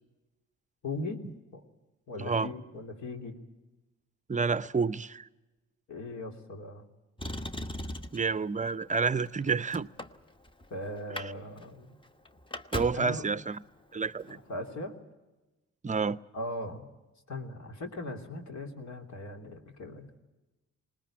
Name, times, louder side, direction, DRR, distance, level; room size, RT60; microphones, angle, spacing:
voice 1, 0.8-1.2 1.5-1.6 2.1-3.3 5.9-6.8 10.7-12.0 12.9-13.4 14.3-14.9 16.3-16.9 17.3-20.1, left 2 dB, 60° left, 3.1 m, -39 dB
voice 2, 2.2-2.5 4.3-5.3 8.1-9.9 11.1-11.2 12.7-13.6 13.9-14.4 15.8-16.2, right 5 dB, 25° right, 0.7 m, -29 dB
Motor vehicle (road), 7.2-8.3 9.1-10.7 11.0-11.3 11.6-11.7 12.0-13.1 14.2-14.3, left 1 dB, 15° left, 1.2 m, -38 dB
20.0 x 20.0 x 8.7 m
supercardioid pair, 60°, 31 cm